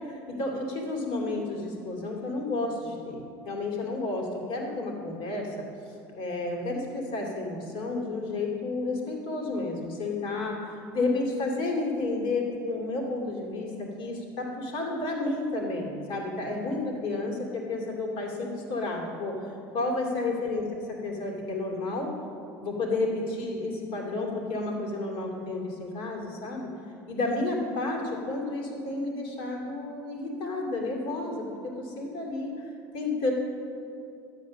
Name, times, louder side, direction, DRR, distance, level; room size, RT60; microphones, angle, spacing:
voice 1, 0.1-5.6 6.1-20.6 21.0-22.1 22.6-26.7 27.1-33.3, left 2 dB, 60° left, 0 dB, 2.7 m, -31 dB
12.5 x 8.3 x 6.3 m, 2.6 s
supercardioid pair, 110°, 10 cm